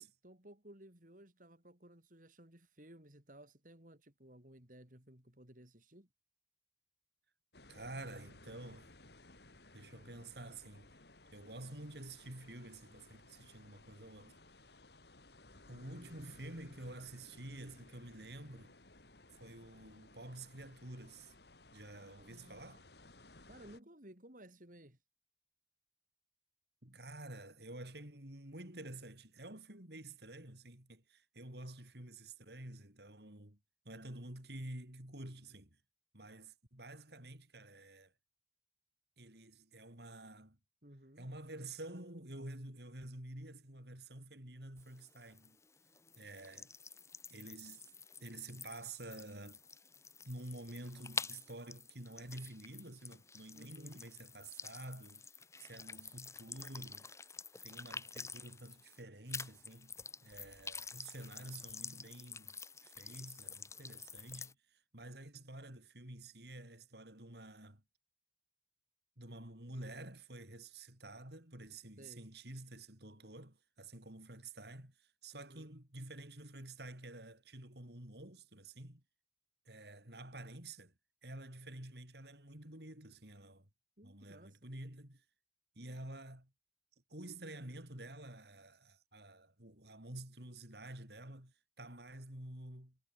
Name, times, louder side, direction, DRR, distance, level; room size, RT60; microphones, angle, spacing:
voice 1, 0.0-6.1 15.9-16.3 22.3-22.7 23.5-25.0 40.8-41.3 53.5-54.0 72.0-72.3 75.3-75.7 84.0-84.7, right 1 dB, 45° right, 4.5 m, -58 dB
sound 1, 7.5-23.8, left 2 dB, 65° left, 3.9 m, -60 dB
voice 2, 7.7-8.9 9.7-11.0 11.3-14.4 15.7-18.7 19.4-21.3 21.7-22.9 26.8-33.6 33.9-35.8 36.1-38.1 39.2-40.6 41.2-45.6 46.2-46.7 47.3-47.8 48.2-49.6 50.3-55.3 55.6-57.1 57.6-59.9 60.2-67.8 69.2-79.0 79.7-80.9 81.2-83.7 84.0-85.2 85.8-86.5 87.1-93.0, right 1 dB, 65° right, 5.6 m, -50 dB
sound 2, 44.8-59.0 59.3-64.5, left 4 dB, 15° left, 2.0 m, -49 dB
head